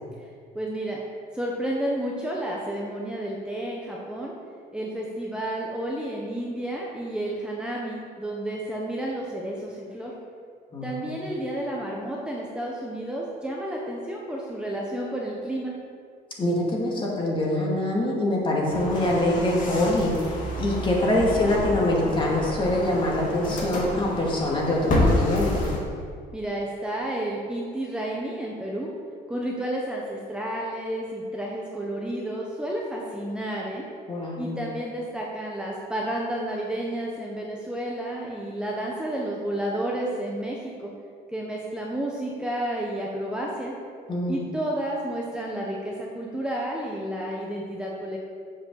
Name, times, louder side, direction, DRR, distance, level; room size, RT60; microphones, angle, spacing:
voice 1, 0.5-1.0 1.3-4.3 4.7-10.1 10.8-15.7 26.3-28.9 29.3-33.8 34.4-40.9 41.3-43.7 44.3-48.2, right 1 dB, 5° right, -3 dB, 1.1 m, -31 dB
voice 2, 10.7-11.2 16.4-20.1 20.6-25.7 34.1-34.6 44.1-44.5, left 1 dB, 30° left, -3 dB, 2.3 m, -24 dB
sound 1, 18.7-25.8, left 1 dB, 50° left, 2.0 m, -28 dB
7.4 x 5.2 x 7.1 m, 2.1 s
cardioid pair, 110°, 17 cm